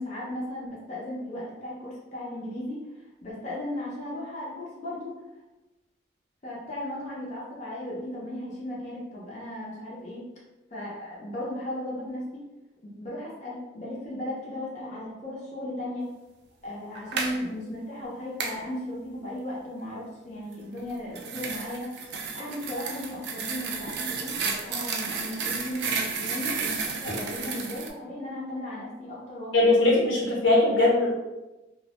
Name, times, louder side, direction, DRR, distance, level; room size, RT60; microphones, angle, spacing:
voice 1, 0.0-2.8 3.2-5.2 6.4-10.2 10.7-12.4 12.8-16.1 16.6-21.9 22.3-29.7, left 1 dB, 40° left, -5 dB, 0.5 m, -36 dB
sound 1, 17.0-17.4 18.4-18.6 20.8-27.9, right 5 dB, 60° right, 0.3 m, -32 dB
voice 2, 29.5-31.2, left 2 dB, 90° left, -4 dB, 0.8 m, -20 dB
2.1 x 2.0 x 2.8 m, 1.0 s
head